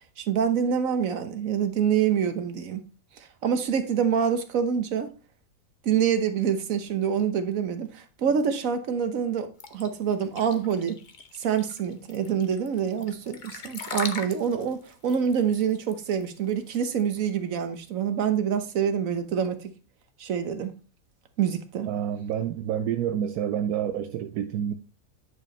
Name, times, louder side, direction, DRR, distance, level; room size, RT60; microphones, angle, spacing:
voice 1, 0.2-2.8 3.2-5.1 5.8-11.0 11.4-19.6 20.2-20.7 21.4-21.9, right 7 dB, 65° right, 1.4 m, -26 dB
sound 1, 9.6-17.3, left 4 dB, 40° left, 0.9 m, -39 dB
voice 2, 21.9-24.7, right 9 dB, 80° right, 1.1 m, -28 dB
9.7 x 5.5 x 3.2 m
omnidirectional pair, 1.6 m